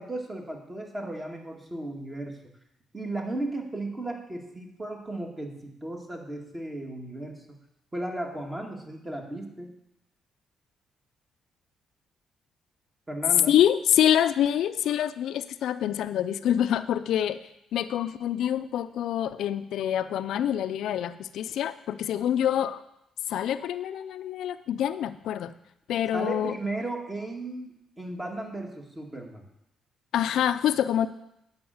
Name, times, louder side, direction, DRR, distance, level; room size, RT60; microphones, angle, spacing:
voice 1, 0.0-2.4 2.9-7.4 7.9-9.7 13.1-13.5 26.1-29.5, right 2 dB, 20° right, 1 dB, 2.1 m, -35 dB
voice 2, 13.5-17.4 17.7-22.8 23.3-25.5 25.9-26.5 30.1-31.1, left 10 dB, 75° left, 11 dB, 0.4 m, -26 dB
9.5 x 5.6 x 7.8 m, 0.81 s
cardioid pair, 90°, 0 cm